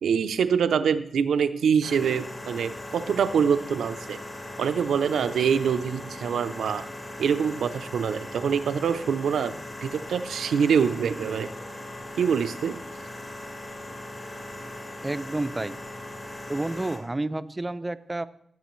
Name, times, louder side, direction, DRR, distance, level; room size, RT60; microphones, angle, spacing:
voice 1, 0.0-4.2 4.6-6.9 7.2-9.5 9.8-11.5 12.2-12.8, right 7 dB, 90° right, 10 dB, 0.5 m, -25 dB
sound 1, 1.8-17.0, left 1 dB, 30° left, 4.1 m, -39 dB
voice 2, 15.0-15.8 16.5-18.3, right 2 dB, 25° right, 12 dB, 0.5 m, -30 dB
16.5 x 7.4 x 3.1 m, 0.72 s
cardioid pair, 65°, 0 cm